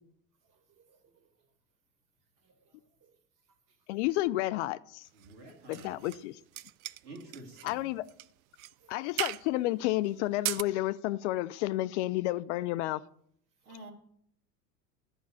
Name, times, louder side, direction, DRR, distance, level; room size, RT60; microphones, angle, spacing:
voice 1, 0.4-1.5 2.4-3.2 3.5-3.9 5.4-6.0 7.1-7.2 7.5-7.7 8.7-9.2 13.6-13.9, right 6 dB, 40° right, 2.3 m, -66 dB
voice 2, 3.9-5.1 5.7-6.4 7.6-8.0 8.9-13.0, left 17 dB, 50° left, 0.5 m, -31 dB
voice 3, 5.1-6.0 7.0-7.9 13.6-13.9, right 1 dB, 75° right, 3.2 m, -48 dB
sound 1, 5.2-6.2 6.5-7.7 8.1-8.3 8.6-8.7 9.2-9.5 10.3-10.6, right 16 dB, 60° right, 0.5 m, -37 dB
11.5 x 5.4 x 8.5 m
figure-of-eight pair, 80°, 48 cm